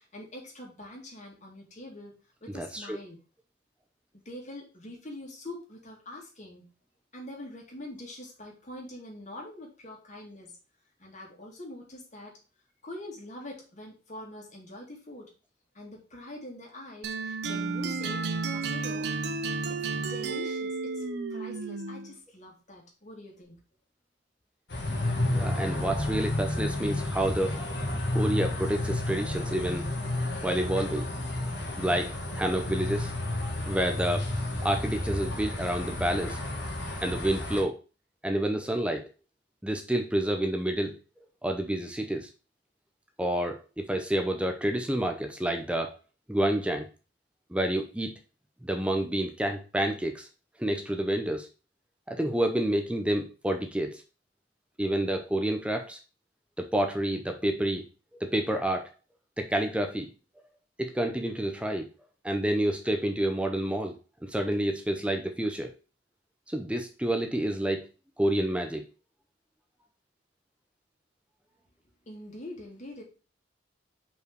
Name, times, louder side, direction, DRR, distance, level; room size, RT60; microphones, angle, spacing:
voice 1, 0.0-2.1 2.4-3.2 4.2-6.7 7.1-10.5 11.0-12.3 12.8-15.3 15.7-19.1 19.7-21.0 21.3-23.6 72.1-73.0, left 1 dB, 40° left, -1 dB, 2.5 m, -44 dB
voice 2, 2.5-3.0 25.2-27.6 28.1-29.9 30.4-31.1 31.8-33.1 33.7-34.3 34.6-36.4 37.0-37.8 38.2-39.1 39.6-41.0 41.4-42.3 43.2-46.0 46.3-46.9 47.5-48.2 48.6-50.3 50.6-51.5 52.1-54.0 54.8-56.0 56.6-57.9 58.2-58.9 59.4-60.1 60.8-61.9 62.2-64.0 64.2-65.7 66.5-67.9 68.2-68.8, right 1 dB, 5° right, 5 dB, 0.7 m, -29 dB
sound 1, 17.0-22.1, right 4 dB, 65° right, 0.7 m, -32 dB
sound 2, 24.7-37.6, left 1 dB, 65° left, 2.1 m, -31 dB
5.5 x 4.7 x 4.6 m, 0.33 s
head